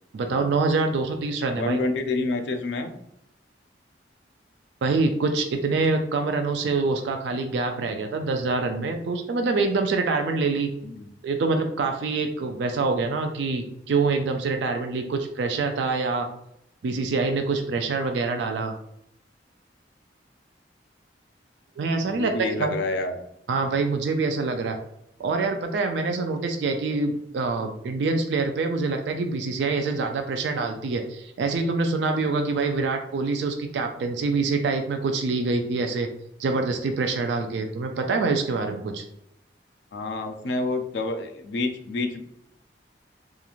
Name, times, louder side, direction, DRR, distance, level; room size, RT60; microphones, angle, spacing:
voice 1, 0.1-1.8 4.8-10.7 11.2-16.3 16.8-18.8 21.8-22.3 22.6-22.8 23.5-24.8 25.2-36.1 36.4-39.0, right 3 dB, 75° right, 5 dB, 0.3 m, -25 dB
voice 2, 1.5-2.9 10.8-11.1 22.0-23.1 39.9-42.2, left 2 dB, 75° left, 6 dB, 0.4 m, -28 dB
3.0 x 2.4 x 2.4 m, 0.76 s
head